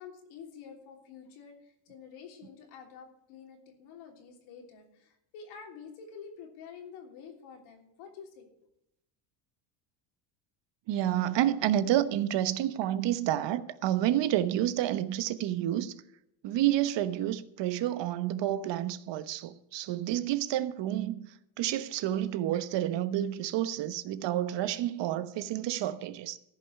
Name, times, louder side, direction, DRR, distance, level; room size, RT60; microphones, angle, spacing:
voice 1, 0.0-8.5, left 6 dB, 75° left, 3.4 m, -48 dB
voice 2, 10.9-16.0 16.4-21.3 21.6-26.4, right 12 dB, 60° right, 1.1 m, -29 dB
14.5 x 5.6 x 8.3 m
supercardioid pair, 95°, 49 cm